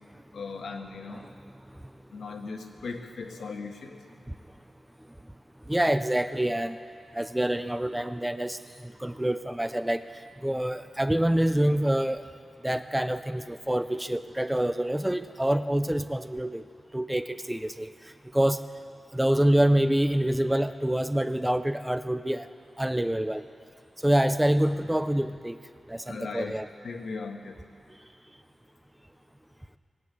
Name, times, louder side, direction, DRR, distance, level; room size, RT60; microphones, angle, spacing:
voice 1, 0.3-1.3 2.1-4.0 26.1-26.6 26.8-27.6, left 4 dB, 75° left, 3 dB, 1.4 m, -38 dB
voice 2, 5.7-6.8 7.1-8.6 8.8-10.0 10.4-12.2 12.6-16.6 16.9-17.9 18.3-18.6 19.1-22.5 22.8-23.4 24.0-25.6 25.9-26.7, right 1 dB, 5° right, 11 dB, 0.4 m, -26 dB
20.0 x 8.5 x 8.3 m, 2.4 s
wide cardioid pair, 155°, 0 cm